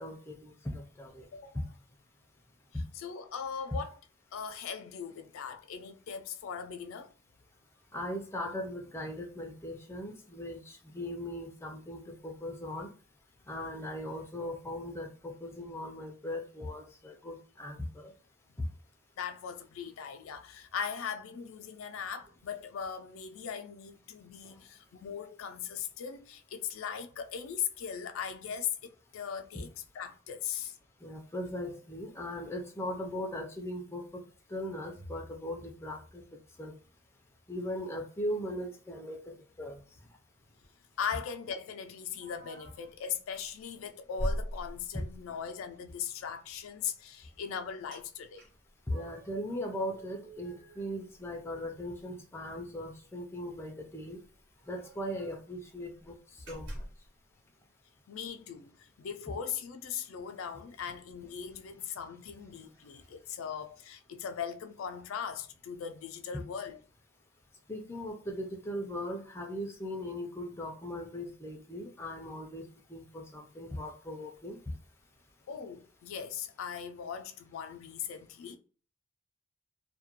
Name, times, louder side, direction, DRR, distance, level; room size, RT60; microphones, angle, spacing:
voice 1, 0.0-1.2 7.9-12.9 13.5-18.1 18.6-18.7 31.0-34.2 34.5-36.2 36.6-36.7 37.5-39.8 44.9-45.0 48.9-54.2 54.7-56.2 56.5-56.9 67.7-74.6, left 1 dB, 10° left, 0.4 m, -39 dB
voice 2, 2.9-3.9 4.3-7.1 19.2-29.7 29.9-30.8 41.0-48.5 58.1-66.8 75.5-78.6, left 7 dB, 85° left, 0.4 m, -39 dB
sound 1, 42.2-42.9 43.4-43.6 44.2-45.3 47.9-48.0 48.4-49.4 49.8-51.7 52.0-52.1 52.4-52.6 53.7-53.8 54.0-54.1 54.6-55.5 55.9-56.1 56.5-57.1, equal, 60° right, 0.9 m, -41 dB
2.3 x 2.1 x 2.8 m
head